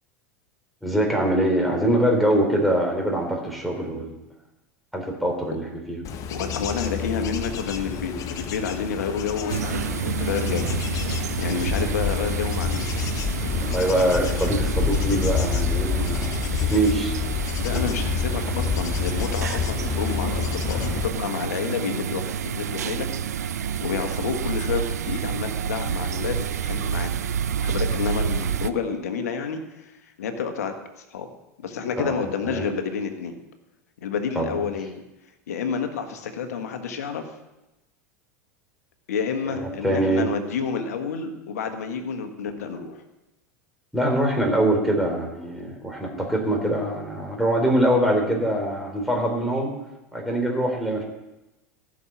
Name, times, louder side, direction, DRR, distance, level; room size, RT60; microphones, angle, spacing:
voice 1, 0.8-4.2 4.9-6.0 13.6-17.1 32.0-32.2 32.4-32.6 34.4-34.5 39.4-40.3 43.9-49.7 50.1-51.0, right 1 dB, ahead, 0 dB, 3.9 m, -23 dB
Bird / Insect / Wind, 6.0-21.1, left 7 dB, 40° left, 1.1 m, -28 dB
voice 2, 6.3-10.7 11.4-12.9 17.6-23.1 23.8-27.3 27.6-31.3 31.6-33.4 34.0-35.0 35.5-37.3 39.1-43.0, left 6 dB, 70° left, 7 dB, 1.5 m, -29 dB
sound 1, 9.5-28.7, right 8 dB, 80° right, 0.6 m, -29 dB
15.0 x 6.5 x 7.3 m, 0.98 s
hypercardioid pair, 85°, 9 cm